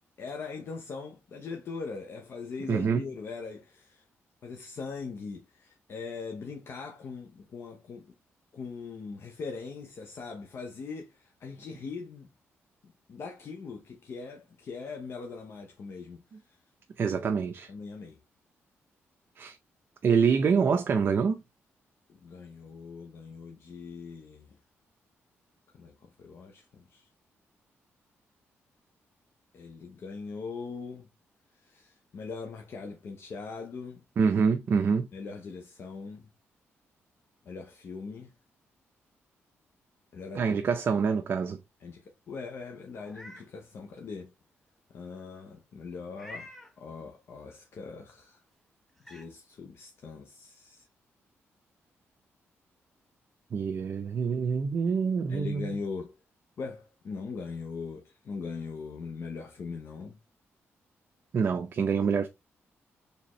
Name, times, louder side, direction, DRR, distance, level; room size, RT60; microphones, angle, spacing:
voice 1, 0.2-4.0 4.4-8.1 8.5-12.3 12.8-16.6 17.1-17.3 17.7-18.2 22.1-24.5 25.7-27.1 29.5-31.1 31.5-34.0 35.1-36.3 37.4-38.3 40.1-40.6 41.8-44.3 44.9-48.4 49.0-50.9 55.3-56.2 56.6-60.2, left 4 dB, 55° left, 0.8 m, -41 dB
voice 2, 2.7-3.0 17.0-17.7 19.4-19.6 20.0-21.4 34.2-35.1 40.4-41.6 53.5-55.8 61.3-62.3, right 6 dB, 50° right, 0.5 m, -26 dB
Meow, 42.9-43.5 44.0-44.1 46.1-46.7 48.3-48.4 49.0-49.3, left 1 dB, ahead, 1.0 m, -47 dB
4.4 x 3.4 x 3.0 m
cardioid pair, 120°, 5 cm